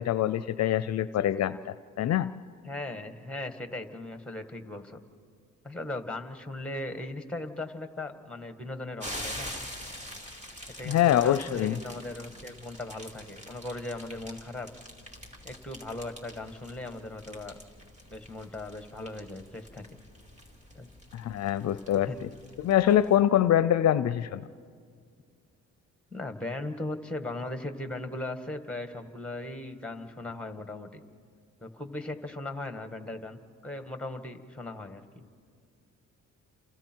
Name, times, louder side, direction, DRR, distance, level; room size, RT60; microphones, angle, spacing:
voice 1, 0.0-2.3 10.8-11.7 21.1-22.3 22.6-24.4, left 11 dB, 60° left, 15 dB, 0.5 m, -24 dB
voice 2, 2.6-5.0 5.6-9.5 10.8-14.7 15.4-17.5 18.1-19.8 20.8-20.9 22.0-22.2 24.1-24.2 26.1-31.0 31.6-35.2, left 2 dB, 5° left, 8 dB, 1.7 m, -38 dB
sound 1, 9.0-23.2, equal, 25° right, 3.4 m, -45 dB
29.5 x 27.5 x 4.6 m, 2.1 s
cardioid pair, 90°, 30 cm